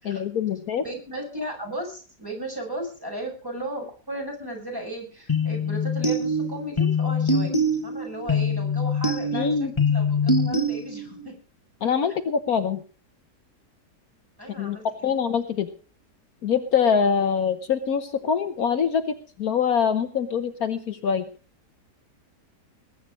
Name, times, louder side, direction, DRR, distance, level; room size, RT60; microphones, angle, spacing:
voice 1, 0.0-0.8 9.3-9.7 11.8-12.8 14.6-14.8 15.0-15.7 16.4-21.3, left 7 dB, 65° left, 8 dB, 1.4 m, -24 dB
voice 2, 0.8-7.5 7.8-11.3 14.4-15.1, right 1 dB, 10° right, 0 dB, 6.2 m, -35 dB
sound 1, 5.3-11.3, left 2 dB, 15° left, 1.7 m, -24 dB
20.5 x 9.1 x 5.1 m, 0.39 s
omnidirectional pair, 1.8 m